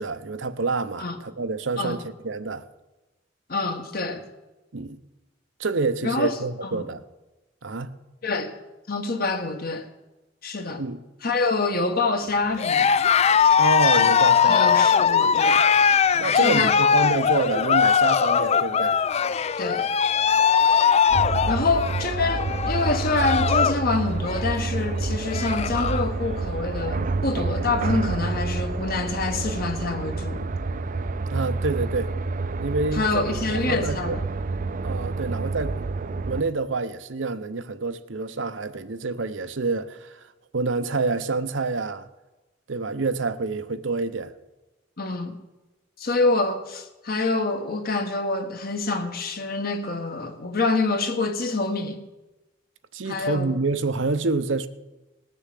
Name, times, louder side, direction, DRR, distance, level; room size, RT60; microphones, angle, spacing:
voice 1, 0.0-2.6 4.7-5.0 5.6-7.0 7.6-7.9 10.8-11.0 13.6-14.6 16.2-19.1 21.5-21.7 31.3-32.1 32.6-34.2 34.8-35.8 36.3-40.2 40.5-42.1 42.7-44.3 52.9-54.7, right 3 dB, 75° right, 0.8 m, -27 dB
voice 2, 3.5-4.2 6.0-6.3 6.6-6.8 8.2-8.5 8.9-9.9 10.4-10.8 11.2-13.0 14.0-14.1 14.4-15.6 16.4-16.9 19.6-19.9 21.5-30.5 32.9-34.2 45.0-45.4 46.0-52.0 53.0-53.5, left 3 dB, 50° left, 1.5 m, -26 dB
Cheering, 12.6-23.8 24.1-24.5 25.0-25.1 25.2-26.1, left 7 dB, 35° left, 0.4 m, -20 dB
sound 1, 21.1-36.4, right 3 dB, 45° right, 0.6 m, -28 dB
19.0 x 6.9 x 7.6 m
head